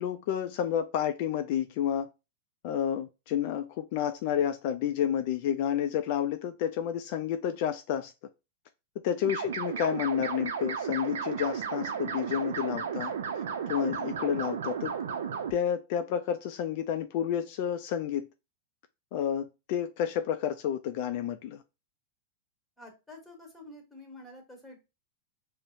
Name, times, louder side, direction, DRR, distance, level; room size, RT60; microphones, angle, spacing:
voice 1, 0.0-2.1 2.6-8.1 9.0-13.1 13.7-14.9 15.5-18.3 19.1-21.6, left 9 dB, 55° left, 0.3 m, -30 dB
voice 2, 9.2-9.7 22.8-24.8, left 2 dB, 5° left, 1.3 m, -49 dB
sound 1, 9.2-15.5, right 7 dB, 85° right, 0.5 m, -34 dB
5.4 x 2.0 x 2.5 m
hypercardioid pair, 125°, 0 cm